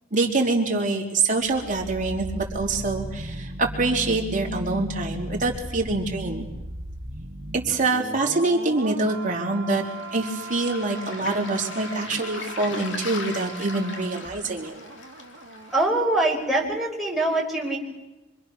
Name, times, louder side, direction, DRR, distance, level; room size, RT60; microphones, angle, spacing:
voice 1, 0.1-6.4 7.6-9.8 10.1-14.7, right 3 dB, 40° right, 0 dB, 3.8 m, -25 dB
sound 1, 1.4-16.3 16.6-16.8, right 1 dB, 65° right, 2.2 m, -37 dB
Waves surf, 9.9-15.8, left 3 dB, 65° left, 2.8 m, -39 dB
voice 2, 15.7-17.8, right 2 dB, ahead, -3 dB, 5.3 m, -23 dB
26.0 x 26.0 x 6.4 m, 1.0 s
head